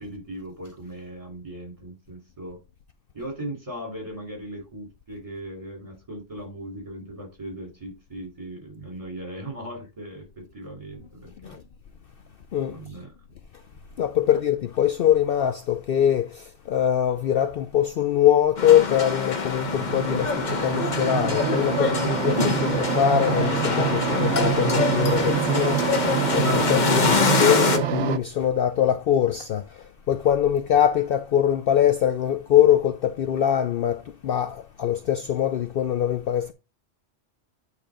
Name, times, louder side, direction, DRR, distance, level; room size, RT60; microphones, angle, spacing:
voice 1, 0.0-2.6 3.1-11.6 12.7-13.1 14.2-14.3, right 1 dB, 25° right, 3.1 m, -38 dB
voice 2, 14.0-36.5, left 10 dB, 60° left, 0.7 m, -23 dB
sound 1, 18.6-27.8, left 4 dB, 40° left, 1.0 m, -25 dB
sound 2, 19.6-28.2, right 10 dB, 75° right, 0.9 m, -26 dB
8.8 x 3.4 x 5.0 m
omnidirectional pair, 1.2 m